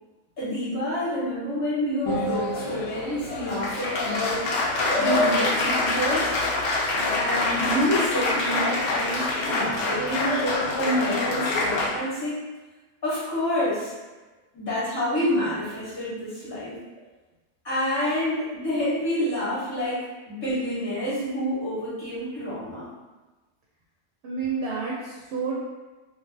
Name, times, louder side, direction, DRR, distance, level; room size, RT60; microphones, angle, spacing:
voice 1, 0.4-4.5 4.9-6.3 7.1-12.4 13.0-13.9 14.5-16.8 17.6-22.9, equal, 25° left, -9 dB, 0.7 m, -28 dB
Applause, 2.0-11.9, left 2 dB, 70° left, 0.8 m, -25 dB
voice 2, 24.2-25.7, right 4 dB, 70° right, -4 dB, 0.8 m, -30 dB
2.4 x 2.1 x 3.2 m, 1.2 s
omnidirectional pair, 1.2 m